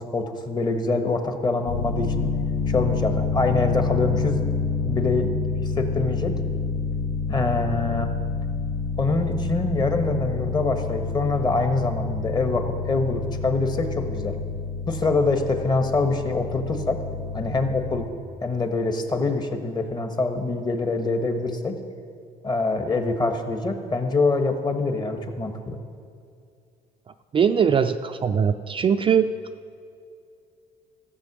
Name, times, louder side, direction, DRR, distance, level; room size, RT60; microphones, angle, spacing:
voice 1, 0.0-2.3 2.7-4.5 4.8-5.4 5.6-6.3 7.3-8.1 9.0-14.4 14.9-17.0 17.3-18.1 18.4-21.8 22.4-25.8, left 3 dB, 25° left, 6 dB, 1.2 m, -25 dB
sound 1, 1.7-18.1, left 4 dB, 70° left, 2.0 m, -28 dB
voice 2, 27.3-29.3, right 7 dB, 30° right, 8 dB, 0.4 m, -21 dB
14.0 x 7.6 x 6.1 m, 2.4 s
cardioid pair, 110°, 17 cm